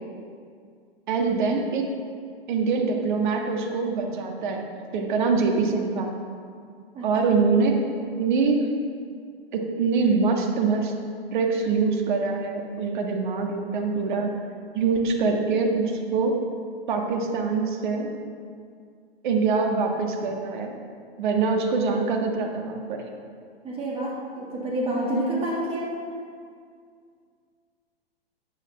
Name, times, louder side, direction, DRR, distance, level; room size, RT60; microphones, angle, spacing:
voice 1, 1.1-1.9 2.5-4.7 4.9-6.1 7.0-7.8 8.2-8.7 9.5-10.9 11.3-14.3 14.7-16.4 16.9-18.1 19.2-20.8 21.2-23.0, right 4 dB, 50° right, 2 dB, 1.7 m, -24 dB
voice 2, 23.6-26.0, right 1 dB, 20° right, -4 dB, 2.1 m, -28 dB
13.5 x 8.9 x 3.2 m, 2.2 s
figure-of-eight pair, 115°, 31 cm